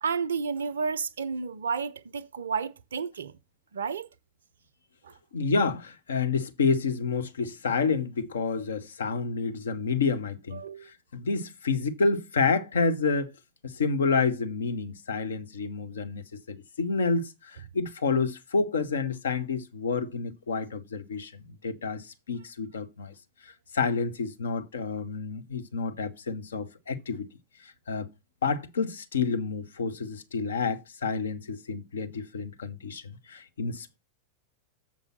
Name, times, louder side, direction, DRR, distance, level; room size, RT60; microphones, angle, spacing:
voice 1, 0.0-3.4 3.7-4.1 5.0-5.1 10.5-10.9 14.1-14.2, right 5 dB, 65° right, 0.5 m, -31 dB
voice 2, 5.3-13.3 13.6-23.1 23.4-27.3 27.6-28.1 28.4-34.0, left 4 dB, 65° left, 0.8 m, -29 dB
7.2 x 5.3 x 5.8 m
figure-of-eight pair, 90°, 0 cm